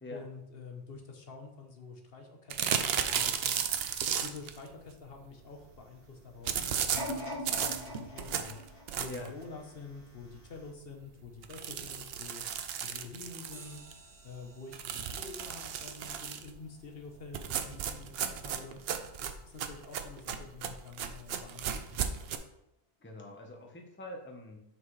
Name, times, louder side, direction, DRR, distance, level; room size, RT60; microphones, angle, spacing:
voice 1, 0.1-3.6 4.2-18.8 19.2-21.9, left 4 dB, 60° left, 3 dB, 1.1 m, -48 dB
sound 1, 2.5-4.6 6.5-9.4 9.8-9.9 10.3-10.4 10.6-10.7 11.4-13.9 14.7-16.5 17.3-22.4, right 8 dB, 65° right, 0.8 m, -34 dB
sound 2, 6.9-10.0 10.6-10.7, left 1 dB, 80° left, 2.2 m, -41 dB
sound 3, 13.5-18.4, right 2 dB, 25° right, 1.5 m, -58 dB
voice 2, 23.0-24.6, left 1 dB, 10° left, 1 dB, 0.9 m, -44 dB
7.3 x 5.9 x 3.2 m, 0.87 s
omnidirectional pair, 1.1 m